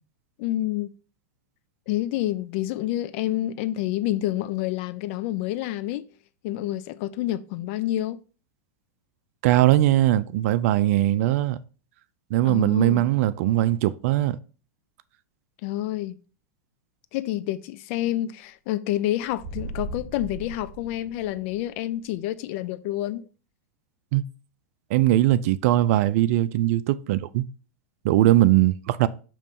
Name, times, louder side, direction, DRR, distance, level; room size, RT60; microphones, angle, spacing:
voice 1, 0.4-0.9 1.9-6.0 6.4-8.2 12.4-13.1 15.6-16.2 17.1-23.3, left 14 dB, 55° left, 0.5 m, -28 dB
voice 2, 9.4-11.6 12.3-14.4 24.1-24.2 24.9-27.4 28.0-29.1, right 14 dB, 60° right, 0.4 m, -20 dB
sound 1, 19.2-21.7, right 2 dB, 30° right, 1.9 m, -37 dB
6.7 x 3.1 x 5.2 m
hypercardioid pair, 125°, 9 cm